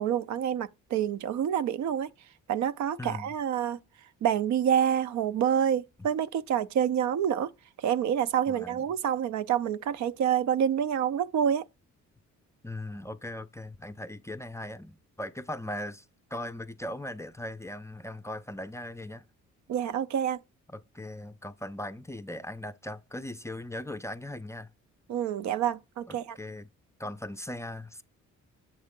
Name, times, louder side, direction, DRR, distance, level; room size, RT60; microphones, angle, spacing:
voice 1, 0.0-2.1 2.5-3.8 4.2-7.5 7.8-11.6 19.7-20.4 25.1-26.4, right 9 dB, 70° right, 0.6 m, -27 dB
voice 2, 3.0-3.3 8.5-8.8 12.6-19.2 20.7-24.7 26.1-26.7 27.0-28.0, left 1 dB, 10° left, 0.4 m, -39 dB
7.6 x 3.6 x 3.7 m
cardioid pair, 90°, 30 cm